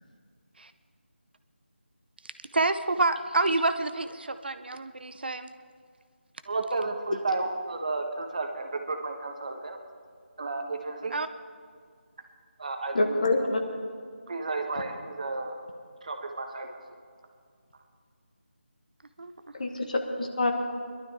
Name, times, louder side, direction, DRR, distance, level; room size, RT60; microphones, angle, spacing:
voice 1, 2.5-5.5 11.1-11.3 19.2-19.3, right 2 dB, 55° right, 10 dB, 0.7 m, -28 dB
voice 2, 6.4-9.8 10.4-11.1 12.6-13.5 14.3-15.5 16.0-16.8, right 3 dB, 40° right, 4 dB, 1.3 m, -32 dB
voice 3, 12.9-13.6 19.5-20.5, left 2 dB, 40° left, 4 dB, 1.5 m, -26 dB
22.0 x 12.0 x 3.5 m, 2.1 s
figure-of-eight pair, 170°, 6 cm